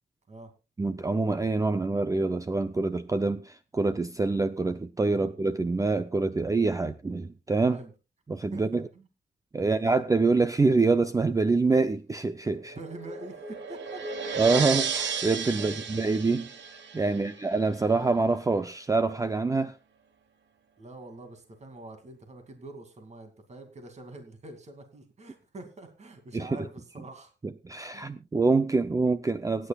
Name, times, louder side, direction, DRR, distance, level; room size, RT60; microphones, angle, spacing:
voice 1, 0.8-7.8 8.3-8.8 9.5-12.8 14.4-16.5 16.9-19.7 26.3-26.5 27.4-29.7, right 3 dB, 20° right, 0.5 m, -26 dB
voice 2, 8.5-9.1 9.5-9.9 12.7-14.0 15.5-15.8 17.1-17.3 20.8-27.3 27.9-28.1, right 2 dB, 40° right, 2.4 m, -45 dB
sound 1, 12.4-17.6, right 6 dB, 85° right, 1.7 m, -34 dB
25.0 x 9.9 x 2.3 m
wide cardioid pair, 155°, 18 cm